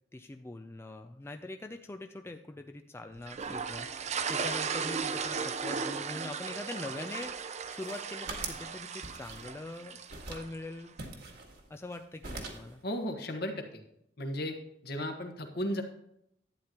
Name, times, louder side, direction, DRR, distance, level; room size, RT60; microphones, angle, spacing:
voice 1, 0.1-3.9 4.3-7.3 7.7-10.0 10.3-11.0 11.7-12.8, left 2 dB, 15° left, 6 dB, 0.3 m, -43 dB
toilet flush, 3.3-10.6, right 5 dB, 40° right, 0.6 m, -36 dB
sound 1, 7.6-8.7 9.0-9.7 10.1-10.5 11.0-12.0 12.2-12.7, right 3 dB, 60° right, 1.8 m, -42 dB
voice 2, 12.8-13.8 14.2-14.6 14.8-15.8, equal, 60° left, 3 dB, 1.4 m, -35 dB
11.5 x 9.1 x 2.9 m, 0.76 s
head